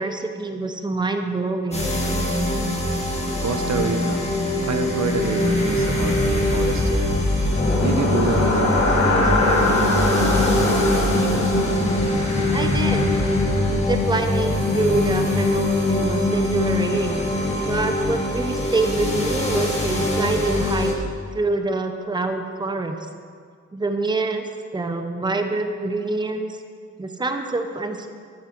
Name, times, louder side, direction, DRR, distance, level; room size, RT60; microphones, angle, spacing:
voice 1, 0.0-1.9 12.5-13.2 13.7-17.2 17.6-20.9 21.3-23.0 23.7-26.6 27.0-28.1, right 3 dB, 15° right, 6 dB, 0.7 m, -25 dB
sound 1, 1.7-20.9, left 1 dB, 20° left, 1.9 m, -23 dB
voice 2, 3.4-4.3 4.6-7.1 7.8-11.6, right 5 dB, 70° right, 8 dB, 0.7 m, -28 dB
sound 2, 7.5-15.5, left 2 dB, 60° left, 1.9 m, -24 dB
12.5 x 6.9 x 4.5 m, 2.1 s
wide cardioid pair, 100°, 30 cm